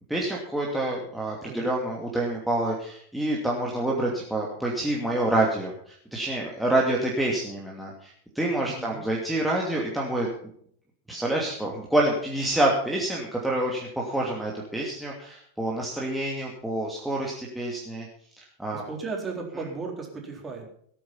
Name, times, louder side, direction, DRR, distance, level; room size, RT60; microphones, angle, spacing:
voice 1, 0.1-10.3 11.1-18.1 18.4-18.8, right 1 dB, ahead, -3 dB, 2.6 m, -27 dB
voice 2, 8.6-9.0 18.7-20.7, right 4 dB, 15° right, 1 dB, 4.0 m, -35 dB
17.5 x 9.4 x 5.7 m, 0.63 s
figure-of-eight pair, 90°, 0 cm